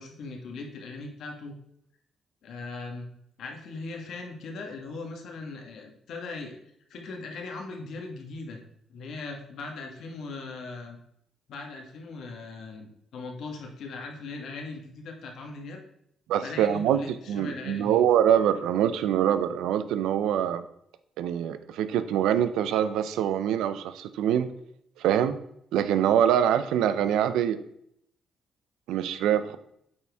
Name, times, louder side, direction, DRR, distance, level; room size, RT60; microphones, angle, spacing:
voice 1, 0.0-1.6 2.4-3.1 3.4-6.6 6.9-8.6 8.9-11.0 11.5-15.8 16.4-18.0, left 3 dB, 70° left, 2 dB, 1.4 m, -39 dB
voice 2, 16.3-17.0 17.3-20.6 21.2-24.5 25.0-25.4 25.7-27.6 28.9-29.6, right 10 dB, 90° right, 12 dB, 0.5 m, -24 dB
8.6 x 4.4 x 3.5 m, 0.72 s
cardioid pair, 90°, 0 cm